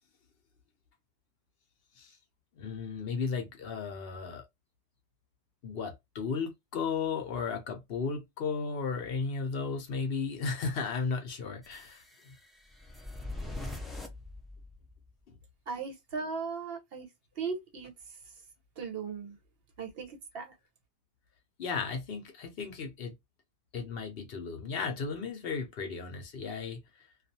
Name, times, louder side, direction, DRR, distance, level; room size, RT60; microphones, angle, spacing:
voice 1, 2.5-4.5 5.6-12.3 21.6-23.1 23.7-27.1, left 5 dB, 65° left, 0.8 m, -35 dB
sound 1, 11.6-15.1, left 2 dB, ahead, 0.3 m, -43 dB
voice 2, 15.7-18.2 18.8-19.4 19.8-20.5, right 5 dB, 65° right, 0.9 m, -38 dB
2.4 x 2.3 x 2.6 m
omnidirectional pair, 1.1 m